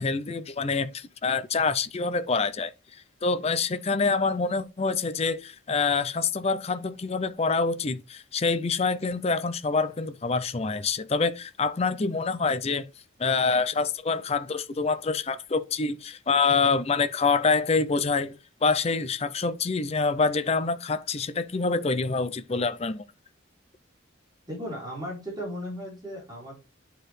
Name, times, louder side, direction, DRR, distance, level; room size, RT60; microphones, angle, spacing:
voice 1, 0.0-2.7 3.2-12.9 13.2-18.4 18.6-23.0, left 4 dB, 30° left, 0.5 m, -26 dB
voice 2, 24.5-26.6, equal, 20° right, 3.2 m, -36 dB
9.7 x 4.6 x 3.2 m
head